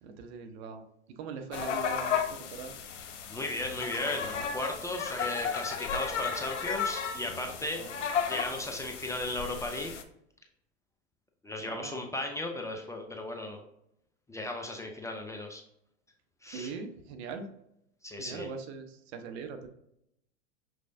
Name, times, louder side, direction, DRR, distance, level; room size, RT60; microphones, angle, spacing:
voice 1, 0.0-2.8 7.8-8.0 11.6-12.1 16.5-17.5 18.2-19.7, right 5 dB, 60° right, 7 dB, 0.8 m, -41 dB
sound 1, 1.5-10.0, left 7 dB, 80° left, 0.7 m, -34 dB
voice 2, 3.3-7.8 8.3-9.9 11.4-13.7 14.3-15.6 16.4-16.7 18.0-18.5, left 1 dB, 10° left, 2 dB, 0.5 m, -36 dB
6.1 x 3.3 x 2.6 m, 0.77 s
hypercardioid pair, 95°, 36 cm